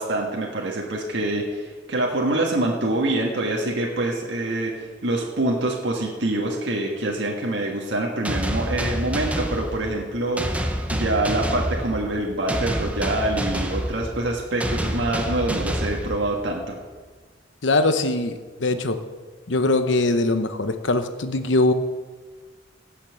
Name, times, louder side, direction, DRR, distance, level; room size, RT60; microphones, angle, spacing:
voice 1, 0.0-16.8, right 2 dB, 70° right, -1 dB, 1.6 m, -25 dB
sound 1, 8.3-16.7, equal, 10° right, 0.9 m, -28 dB
voice 2, 17.6-19.0 19.5-21.7, left 2 dB, 75° left, 9 dB, 0.9 m, -21 dB
17.0 x 5.9 x 7.1 m, 1.4 s
head